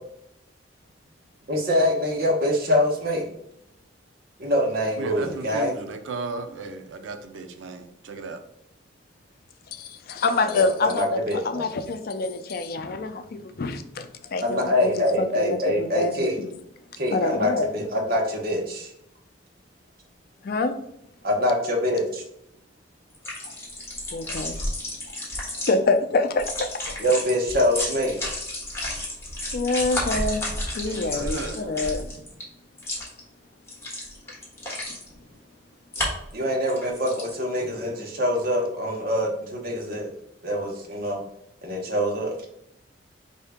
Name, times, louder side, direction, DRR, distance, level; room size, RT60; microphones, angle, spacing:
voice 1, 1.5-3.3 4.4-5.8 10.5-11.7 14.4-16.4 17.0-18.9 21.2-22.2 27.0-28.2 36.3-40.1 40.4-41.2 41.6-42.4, left 1 dB, 55° right, 1 dB, 1.0 m, -24 dB
voice 2, 5.0-8.4 30.8-32.1, right 3 dB, 85° right, 7 dB, 0.5 m, -35 dB
voice 3, 9.7-16.5 17.1-17.7 20.4-20.8 24.1-24.6 25.1-25.2 25.7-27.0 29.5-30.5 30.7-32.0, left 3 dB, 55° left, 8 dB, 0.4 m, -26 dB
sound 1, 23.1-25.7 26.3-32.4 32.8-33.2 33.7-35.1 35.9-36.3 36.7-37.3, left 1 dB, 15° left, 1.3 m, -31 dB
4.5 x 2.7 x 3.5 m, 0.77 s
head